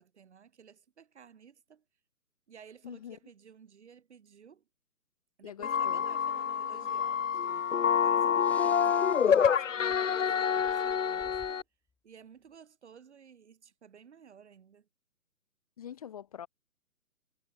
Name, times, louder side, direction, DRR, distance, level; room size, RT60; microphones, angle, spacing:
voice 1, 0.0-1.8 2.5-4.7 5.4-11.7 12.0-14.9, right 7 dB, 45° right, 5.5 m, -55 dB
voice 2, 2.8-3.2 5.4-6.0 8.2-8.8 15.8-16.5, left 9 dB, 25° left, 1.1 m, -45 dB
sound 1, 5.6-11.6, left 7 dB, 55° left, 0.6 m, -27 dB
Breathing, 7.7-7.8 8.3-10.3 10.5-11.6, left 3 dB, 5° left, 2.0 m, -55 dB
figure-of-eight pair, 140°, 47 cm